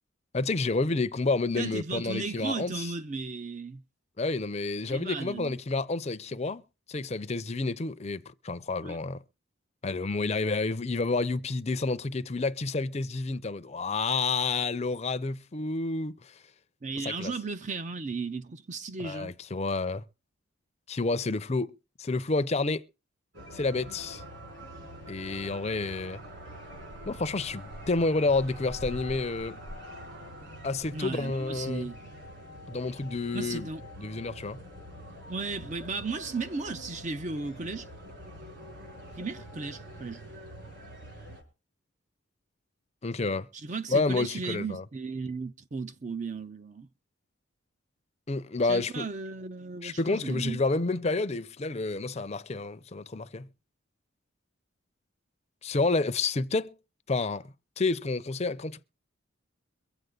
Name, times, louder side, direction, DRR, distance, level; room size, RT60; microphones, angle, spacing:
voice 1, 0.3-2.9 4.2-6.6 6.9-9.2 9.8-16.3 17.0-17.3 19.0-20.0 20.9-21.7 22.0-22.8 23.5-24.2 25.1-26.2 27.1-29.6 30.6-31.9 32.7-33.7 34.0-34.6 43.0-43.5 43.9-44.8 48.3-49.1 49.8-53.5 55.6-56.7 57.1-58.8, left 3 dB, 30° left, 0.6 m, -29 dB
voice 2, 1.6-3.8 4.9-5.6 8.8-9.0 16.8-19.3 30.9-32.0 33.3-33.8 35.3-37.9 39.1-40.2 43.5-46.9 48.7-50.6, right 4 dB, 35° right, 0.5 m, -35 dB
sound 1, 23.3-41.4, equal, 55° right, 4.9 m, -45 dB
23.0 x 7.9 x 3.9 m
head